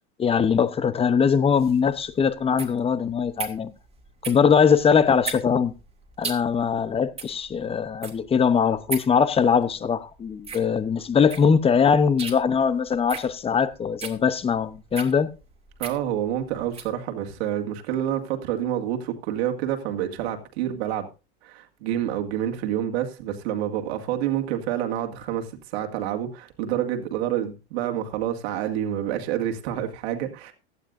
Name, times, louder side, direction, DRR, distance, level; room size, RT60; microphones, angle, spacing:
voice 1, 0.2-3.7 4.3-5.7 6.2-15.3, left 6 dB, 15° left, 0.8 m, -21 dB
sound 1, 1.6-17.0, right 5 dB, 15° right, 2.3 m, -38 dB
voice 2, 15.8-21.1 21.4-30.5, right 11 dB, 65° right, 2.2 m, -28 dB
16.5 x 11.5 x 2.6 m
hypercardioid pair, 115°, 34 cm